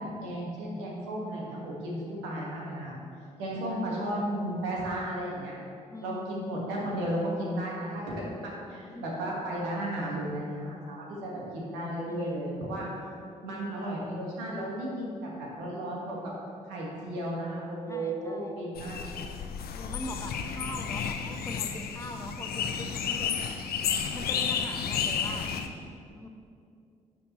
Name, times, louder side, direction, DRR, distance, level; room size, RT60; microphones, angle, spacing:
voice 1, 0.0-3.0 3.4-5.6 6.0-12.9 13.4-16.2 16.7-19.0, right 1 dB, 75° right, -3 dB, 1.8 m, -34 dB
voice 2, 5.9-6.3 8.9-9.1 12.0-12.4 13.4-13.6 17.9-18.6 19.5-23.4 23.6-23.8 24.1-25.6 26.1-26.3, left 1 dB, 15° left, 4 dB, 1.0 m, -42 dB
sound 1, 18.7-25.7, left 7 dB, 55° left, 0.7 m, -32 dB
11.5 x 6.9 x 3.1 m, 2.4 s
figure-of-eight pair, 40°, 18 cm